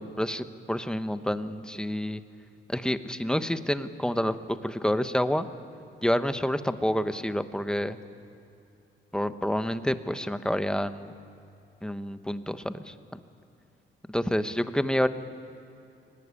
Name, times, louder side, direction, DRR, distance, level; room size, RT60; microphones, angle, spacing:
voice 1, 0.0-2.2 2.7-5.5 6.0-8.0 9.1-11.1 11.8-12.9 14.1-15.1, equal, 5° left, 10 dB, 1.1 m, -28 dB
22.0 x 18.5 x 9.8 m, 2.8 s
cardioid pair, 80°, 21 cm